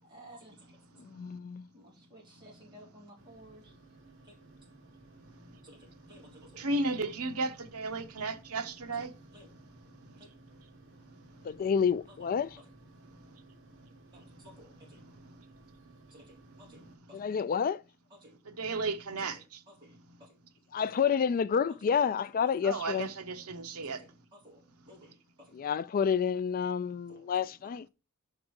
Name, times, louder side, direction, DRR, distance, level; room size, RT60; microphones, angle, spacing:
voice 1, 0.0-0.8 1.7-3.7 4.2-4.4 5.6-7.1 8.9-9.1 9.3-9.5 10.2-10.3 12.1-12.3 12.6-12.7 14.1-15.0 16.1-17.3 18.1-18.4 19.2-20.4 20.8-21.1 21.8-21.9 22.4-22.7 23.8-24.6 24.9-25.5 27.1-27.5, equal, 20° right, 3.6 m, -56 dB
voice 2, 1.0-1.7 11.4-12.6 17.1-17.8 20.7-23.1 25.5-27.9, left 7 dB, 40° left, 0.3 m, -29 dB
sound 1, 3.2-16.9, right 2 dB, 60° right, 2.4 m, -57 dB
voice 3, 6.6-9.1 18.5-19.4 22.6-24.0, right 3 dB, 80° right, 0.9 m, -34 dB
5.3 x 4.9 x 6.2 m
head